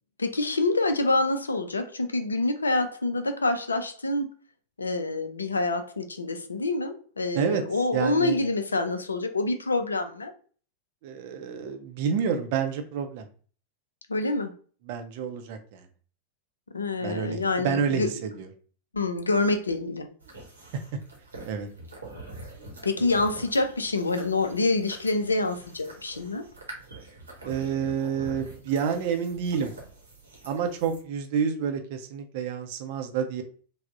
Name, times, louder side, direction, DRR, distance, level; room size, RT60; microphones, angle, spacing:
voice 1, 0.2-4.3 4.8-10.3 14.1-14.5 16.7-18.1 18.9-20.1 22.8-26.4, left 2 dB, 75° left, 8 dB, 0.3 m, -26 dB
voice 2, 7.9-8.4 11.0-13.2 14.8-15.9 17.0-18.5 21.4-21.7 27.4-29.7 30.4-33.4, right 7 dB, 50° right, 6 dB, 0.5 m, -29 dB
sound 1, 20.2-31.0, right 2 dB, 75° right, 0.8 m, -45 dB
3.3 x 2.0 x 2.5 m, 0.42 s
figure-of-eight pair, 90°, 0 cm